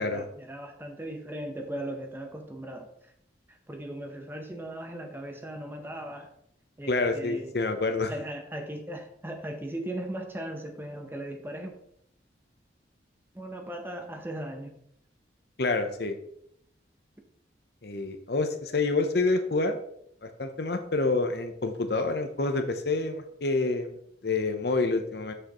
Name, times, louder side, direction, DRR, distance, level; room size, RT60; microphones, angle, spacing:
voice 1, 0.0-3.1 3.5-6.3 6.8-7.6 8.1-11.7 13.3-14.8, right 1 dB, 10° right, 4 dB, 0.8 m, -38 dB
voice 2, 6.9-8.1 15.6-16.2 17.8-19.8 20.2-24.0 24.2-25.3, left 3 dB, 60° left, 7 dB, 0.8 m, -27 dB
7.6 x 6.5 x 3.0 m, 0.71 s
head